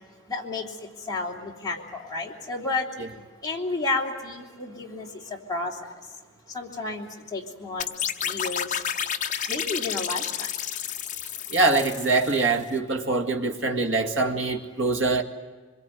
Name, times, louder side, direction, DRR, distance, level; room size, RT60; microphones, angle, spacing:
voice 1, 0.3-0.7 1.1-2.8 3.4-5.9 6.5-7.9 8.2-8.8 9.5-10.5, left 3 dB, 20° left, 3.3 m, -31 dB
sound 1, 7.8-12.6, left 9 dB, 35° left, 1.0 m, -31 dB
voice 2, 11.5-15.2, right 3 dB, 60° right, 2.1 m, -24 dB
25.5 x 22.5 x 9.4 m
head